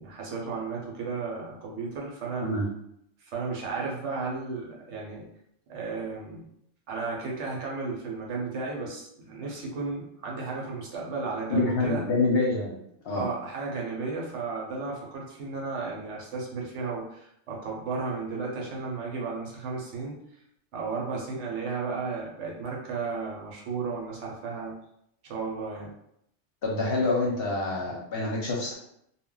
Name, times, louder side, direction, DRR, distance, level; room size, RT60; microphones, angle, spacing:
voice 1, 0.0-2.5 3.2-5.2 5.7-6.5 6.9-12.0 13.1-20.2 20.7-24.7 25.2-25.9, right 4 dB, 65° right, -2 dB, 0.9 m, -34 dB
voice 2, 11.5-12.8 13.0-13.3 26.6-28.7, left 2 dB, 60° left, -2 dB, 0.7 m, -26 dB
2.2 x 2.1 x 3.7 m, 0.74 s
omnidirectional pair, 1.3 m